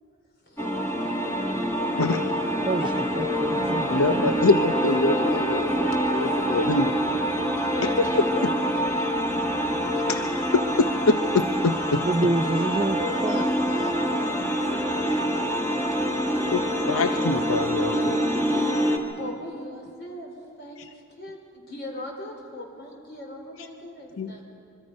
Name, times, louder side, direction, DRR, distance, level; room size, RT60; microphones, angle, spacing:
sound 1, 0.6-19.0, equal, 15° left, 2.0 m, -25 dB
voice 1, 2.6-4.4 12.0-13.5, right 2 dB, 25° right, 0.6 m, -28 dB
voice 2, 3.9-5.7 6.4-6.9 7.8-8.2 10.1-10.2 10.5-12.0 16.5-18.2 24.1-24.3, left 3 dB, 80° left, 0.8 m, -24 dB
voice 3, 5.1-8.5 13.0-15.3 17.9-18.1 18.4-18.8 19.2-20.3 20.6-20.8 21.2-24.4, left 1 dB, 50° left, 4.0 m, -39 dB
25.0 x 23.5 x 5.4 m
head